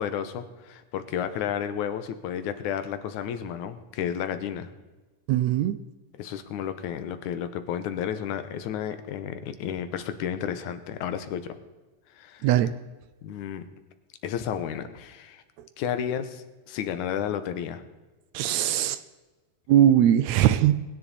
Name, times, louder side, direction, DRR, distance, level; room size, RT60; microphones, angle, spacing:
voice 1, 0.0-4.7 6.2-11.6 12.2-12.5 13.2-13.6 14.2-15.4 15.8-17.8, left 9 dB, 85° left, 10 dB, 2.4 m, -32 dB
voice 2, 5.3-5.8 12.4-12.7 18.3-19.0 19.7-20.8, right 11 dB, 80° right, 13 dB, 1.8 m, -20 dB
21.5 x 10.0 x 4.1 m, 1.2 s
omnidirectional pair, 3.4 m